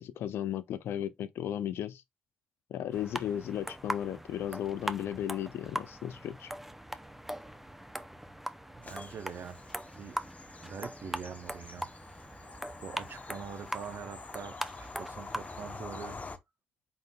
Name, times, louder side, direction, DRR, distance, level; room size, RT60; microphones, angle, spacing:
voice 1, 0.0-2.0 2.7-6.5, left 10 dB, 80° left, 0.4 m, -35 dB
sound 1, 2.9-15.8, right 1 dB, 5° right, 0.5 m, -41 dB
Bird vocalization bird call bird song / Train, 8.8-16.4, left 3 dB, 40° left, 0.8 m, -47 dB
voice 2, 8.8-9.6 9.9-10.2 10.6-11.9 12.8-16.2, right 6 dB, 65° right, 0.7 m, -43 dB
3.9 x 3.9 x 2.3 m
supercardioid pair, 50°, 4 cm